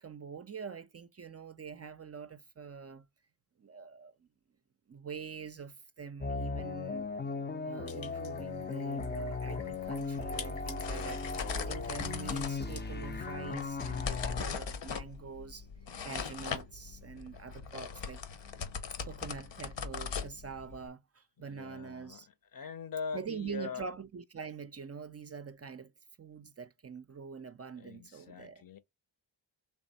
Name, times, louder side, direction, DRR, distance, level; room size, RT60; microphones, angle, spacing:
voice 1, 0.0-3.1 3.6-4.3 4.9-7.1 7.6-15.7 16.0-18.2 19.0-22.3 23.1-25.9 26.2-28.6, right 6 dB, 35° right, 0.5 m, -45 dB
sound 1, 6.2-14.4, left 4 dB, 25° left, 0.5 m, -37 dB
sound 2, 7.9-14.5, left 5 dB, 85° left, 1.8 m, -49 dB
sound 3, 9.7-20.9, left 6 dB, 70° left, 1.0 m, -40 dB
voice 2, 21.4-22.2 22.5-23.9 27.8-28.8, left 6 dB, 50° left, 0.7 m, -42 dB
3.5 x 3.2 x 4.1 m
cardioid pair, 60°, 45 cm